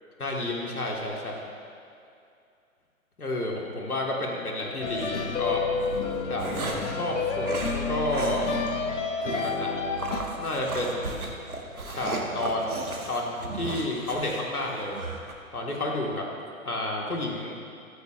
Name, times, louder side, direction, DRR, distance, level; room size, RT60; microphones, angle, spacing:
voice 1, 0.2-1.4 3.2-5.6 6.3-7.5 7.9-8.5 9.4-9.7 10.4-11.3 11.9-15.0 15.5-16.3 16.6-17.5, left 1 dB, 85° left, -1 dB, 1.8 m, -30 dB
Guitar piano sweet instrumental background composition, 4.8-10.2, left 4 dB, 55° left, 1.3 m, -30 dB
sound 1, 4.8-5.1 5.8-7.0 7.4-7.8 8.1-8.4 8.7-8.8 9.3-9.6 10.0-15.3, right 3 dB, 80° right, 1.6 m, -35 dB
15.0 x 13.5 x 2.5 m, 2.4 s
figure-of-eight pair, 125°, 43 cm